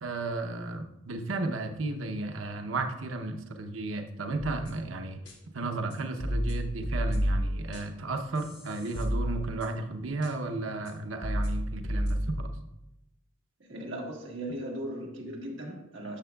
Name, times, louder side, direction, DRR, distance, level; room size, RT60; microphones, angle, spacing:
voice 1, 0.0-5.2 5.5-12.5, right 2 dB, 85° right, 5 dB, 0.7 m, -34 dB
sound 1, 4.4-4.9 5.3-5.4 5.9-8.1 8.4-9.9 10.2-10.3 10.9-11.0 11.2-12.6, equal, 55° left, 1.7 m, -31 dB
voice 2, 13.6-16.2, right 1 dB, 65° right, -1 dB, 1.5 m, -38 dB
10.0 x 6.8 x 2.3 m, 0.88 s
head